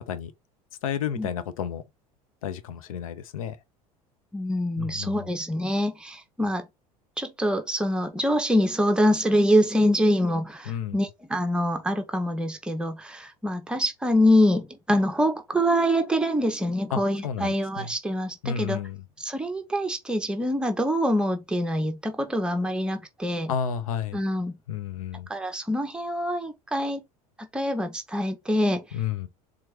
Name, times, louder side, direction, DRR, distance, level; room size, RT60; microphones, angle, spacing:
voice 1, 0.8-1.8 2.4-3.6 4.8-5.3 10.7-11.0 16.9-17.9 18.4-19.0 23.5-24.2 24.7-25.3 28.9-29.3, left 8 dB, 65° left, 0.6 m, -31 dB
voice 2, 4.3-6.7 7.2-18.8 19.2-23.5 24.1-24.6 25.3-27.0 27.4-28.8, equal, 5° right, 0.8 m, -25 dB
4.4 x 2.5 x 4.5 m
figure-of-eight pair, 70°, 19 cm